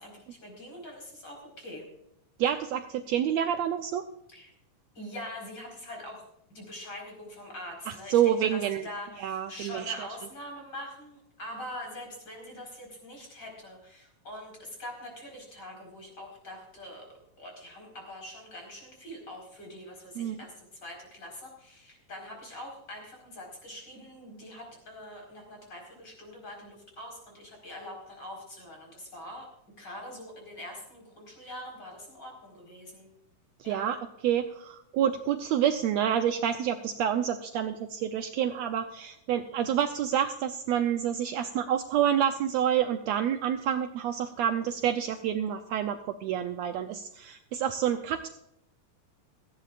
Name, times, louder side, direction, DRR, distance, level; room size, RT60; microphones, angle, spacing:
voice 1, 0.0-1.9 4.3-4.5 4.9-6.2 6.5-17.0 17.4-29.5 29.8-33.1 33.6-33.9, left 1 dB, 30° left, 0 dB, 5.2 m, -44 dB
voice 2, 2.4-4.0 7.9-8.9 9.2-10.1 20.1-20.4 33.6-48.3, right 9 dB, 85° right, 7 dB, 1.5 m, -28 dB
17.5 x 15.0 x 2.5 m, 0.77 s
omnidirectional pair, 3.8 m